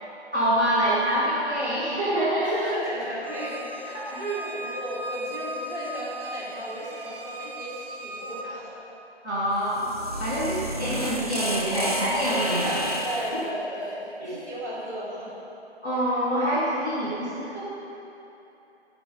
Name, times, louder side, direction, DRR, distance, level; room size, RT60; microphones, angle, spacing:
voice 1, 0.3-2.5 3.9-4.2 9.2-9.9 10.2-12.8 14.2-14.3 15.8-17.6, right 1 dB, 10° left, -18 dB, 0.8 m, -26 dB
voice 2, 2.4-8.8 10.3-10.4 13.0-15.4, right 1 dB, 15° right, -10 dB, 2.1 m, -34 dB
Bowed string instrument, 3.2-8.5, right 1 dB, 55° right, 0.8 m, -38 dB
sound 1, 9.6-13.4, equal, 35° right, 0.5 m, -30 dB
11.5 x 5.2 x 4.8 m, 3.0 s
figure-of-eight pair, 160°, 34 cm